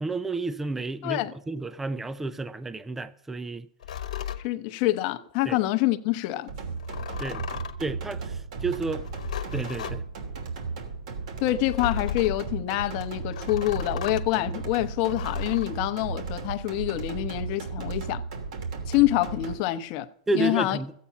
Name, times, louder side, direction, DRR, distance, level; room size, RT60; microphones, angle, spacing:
voice 1, 0.0-3.7 5.5-5.6 7.2-7.5 7.8-9.0 9.5-10.0 20.3-20.9, right 3 dB, 10° right, 0.5 m, -31 dB
voice 2, 1.0-1.3 4.4-6.5 11.4-18.2 18.9-20.1 20.3-20.8, left 16 dB, 45° left, 0.9 m, -26 dB
sound 1, 3.8-4.4 6.8-7.9 9.0-10.0 11.7-12.4 13.3-14.3 15.0-15.7, left 10 dB, 85° left, 1.2 m, -35 dB
sound 2, 6.5-19.5, right 4 dB, 65° right, 2.9 m, -35 dB
14.5 x 8.5 x 5.8 m
hypercardioid pair, 145°, 4 cm